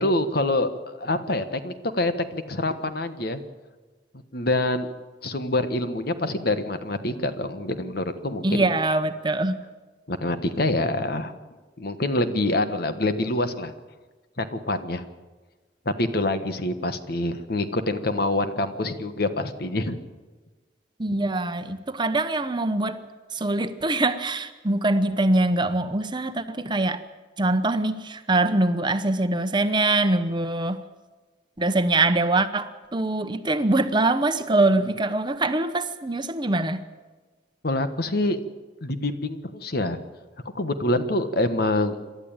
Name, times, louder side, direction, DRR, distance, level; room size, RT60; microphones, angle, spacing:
voice 1, 0.0-3.4 4.3-4.9 5.2-8.7 10.1-11.3 11.8-13.7 14.4-15.0 15.8-20.0 37.6-38.4 38.8-40.0 40.5-42.0, left 2 dB, 60° left, 10 dB, 1.5 m, -26 dB
voice 2, 8.4-9.6 21.0-23.0 23.3-27.0 27.4-30.8 31.6-36.8, right 2 dB, 25° right, 10 dB, 1.0 m, -23 dB
27.5 x 12.5 x 9.0 m, 1.3 s
head